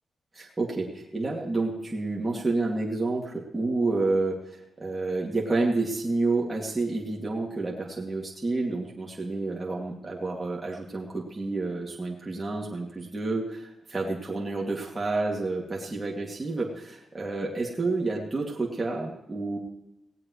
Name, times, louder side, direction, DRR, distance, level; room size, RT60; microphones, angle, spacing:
voice 1, 0.3-19.6, right 3 dB, 20° right, -3 dB, 2.5 m, -29 dB
18.0 x 17.5 x 3.2 m, 0.88 s
wide cardioid pair, 115°, 0 cm